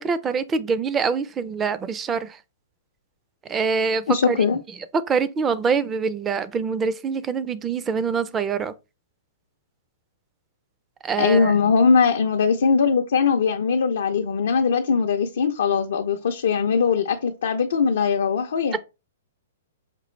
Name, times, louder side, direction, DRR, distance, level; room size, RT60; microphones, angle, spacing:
voice 1, 0.0-2.4 3.5-4.4 5.1-8.7 11.0-11.6 18.7-18.8, right 5 dB, 20° right, 0.4 m, -25 dB
voice 2, 4.1-4.6 11.2-18.8, left 5 dB, 75° left, 0.4 m, -20 dB
5.1 x 2.4 x 3.1 m
hypercardioid pair, 135°, 0 cm